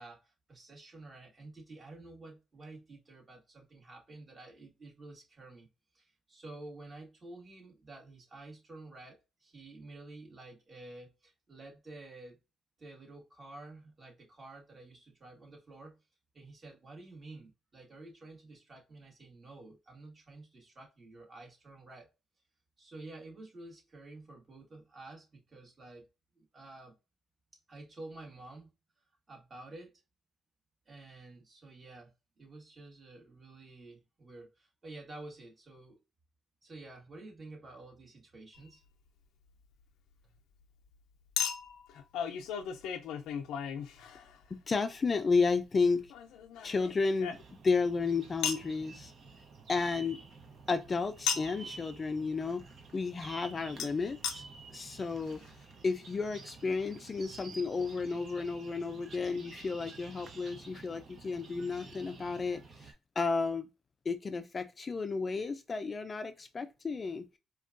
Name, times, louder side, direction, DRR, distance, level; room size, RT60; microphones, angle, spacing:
voice 1, 0.0-5.7 5.9-12.4 12.8-16.0 16.3-22.1 22.8-26.1 26.4-27.0 27.7-28.7 29.3-30.0 30.8-36.0 36.6-38.8 44.0-44.1, right 2 dB, 35° right, 1.7 m, -50 dB
Chink clink, 38.5-38.7 41.4-44.5 46.1-47.8 48.4-48.7 51.3-51.6 53.8-53.9 54.2-54.4 55.0-55.1 55.3-55.4, left 8 dB, 90° left, 0.5 m, -36 dB
voice 2, 44.5-46.1 46.6-47.4 47.6-49.1 49.7-50.2 50.7-52.6 52.9-54.4 54.7-55.4 55.8-63.7 64.1-67.4, left 4 dB, 35° left, 0.4 m, -32 dB
sound 1, 47.3-62.9, right 4 dB, 55° right, 0.9 m, -51 dB
4.4 x 2.3 x 2.5 m
cardioid pair, 90°, 0 cm